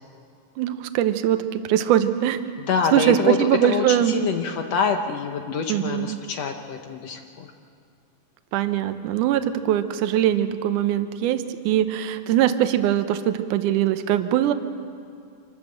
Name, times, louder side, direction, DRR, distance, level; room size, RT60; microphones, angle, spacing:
voice 1, 0.6-2.5 2.9-4.1 5.7-6.2 8.5-14.5, right 11 dB, 75° right, 10 dB, 2.2 m, -22 dB
voice 2, 2.6-7.5, left 6 dB, 70° left, 5 dB, 1.7 m, -26 dB
26.0 x 13.5 x 7.8 m, 2.5 s
omnidirectional pair, 3.8 m